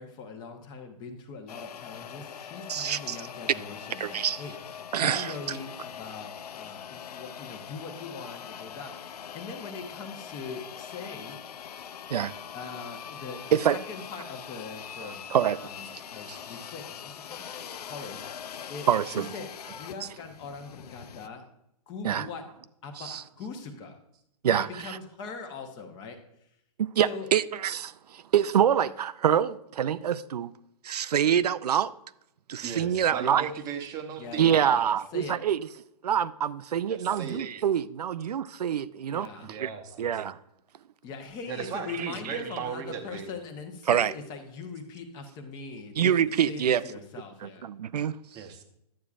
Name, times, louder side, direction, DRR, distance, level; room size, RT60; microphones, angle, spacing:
voice 1, 0.0-4.6 5.0-11.4 12.5-13.6 13.9-15.2 15.6-17.4 17.8-21.5 21.9-22.4 22.8-24.0 24.5-26.5 27.0-27.3 34.2-34.8 35.1-35.4 39.1-39.5 41.0-46.1 46.5-47.7, left 4 dB, 20° left, 0.9 m, -41 dB
sound 1, 1.5-21.3, left 8 dB, 80° left, 0.5 m, -42 dB
voice 2, 2.7-3.2 4.0-4.4 4.9-5.6 12.1-12.3 13.5-13.8 15.0-15.6 16.3-16.4 18.9-19.3 22.0-22.3 23.0-23.2 24.4-25.0 26.8-30.5 30.8-31.9 32.5-33.5 34.4-35.6 36.0-39.3 39.6-39.7 40.0-40.4 42.0-42.3 43.9-44.1 46.0-46.8 47.4-48.2, right 9 dB, 85° right, 0.4 m, -26 dB
voice 3, 32.6-34.9 36.9-37.5 39.4-40.1 41.5-43.3 48.3-48.6, right 7 dB, 20° right, 0.8 m, -37 dB
11.5 x 8.2 x 2.4 m
hypercardioid pair, 150°, 20 cm